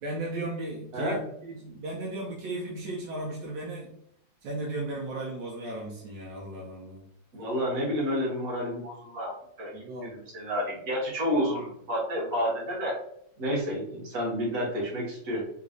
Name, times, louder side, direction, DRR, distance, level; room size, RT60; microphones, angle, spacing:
voice 1, 0.0-3.9 4.4-7.0 9.7-10.2, right 2 dB, 75° right, -2 dB, 1.3 m, -35 dB
voice 2, 7.3-9.3 9.6-12.9 13.4-15.4, equal, 50° right, -4 dB, 1.5 m, -30 dB
3.7 x 3.0 x 2.6 m, 0.71 s
omnidirectional pair, 2.0 m